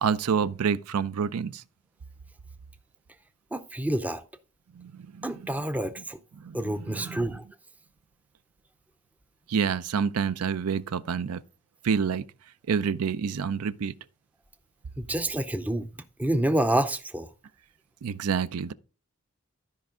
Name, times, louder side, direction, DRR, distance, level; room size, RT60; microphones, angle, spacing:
voice 1, 0.0-1.6 4.8-5.3 6.4-7.3 9.5-11.4 11.8-12.2 12.7-13.9 18.0-18.7, right 6 dB, 85° right, 0.5 m, -28 dB
voice 2, 3.5-4.2 5.2-6.2 6.5-7.4 15.0-15.9 16.2-17.3, right 1 dB, 5° right, 0.4 m, -28 dB
13.0 x 5.2 x 3.6 m
head